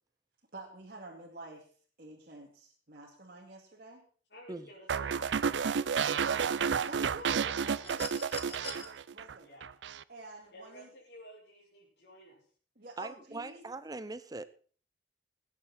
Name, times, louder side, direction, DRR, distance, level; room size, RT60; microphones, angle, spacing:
voice 1, 0.5-1.7 2.0-4.0 6.9-9.5 10.1-10.9 12.8-13.6, right 2 dB, 55° right, 2.4 m, -49 dB
voice 2, 4.3-6.6 7.9-8.8 9.4-9.8 10.5-12.5, equal, 70° left, 4.7 m, -53 dB
sound 1, 4.9-9.3 9.6-10.0, right 6 dB, 85° right, 0.5 m, -31 dB
sound 2, 7.8-8.9 10.4-10.5, left 5 dB, 35° left, 1.9 m, -43 dB
voice 3, 13.0-14.5, right 3 dB, 20° right, 0.6 m, -41 dB
20.0 x 9.7 x 4.2 m
head